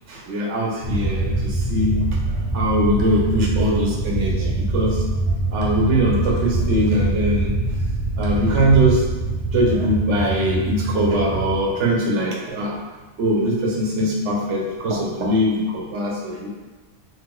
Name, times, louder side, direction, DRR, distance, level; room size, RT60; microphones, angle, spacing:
voice 1, 0.1-2.0 2.5-5.0 5.5-7.6 8.2-9.0 9.5-12.8 13.2-16.5, equal, 85° right, -2 dB, 1.0 m, -21 dB
sound 1, 0.8-11.6, right 2 dB, 45° right, 0.6 m, -24 dB
4.3 x 2.4 x 2.2 m, 1.3 s
omnidirectional pair, 1.2 m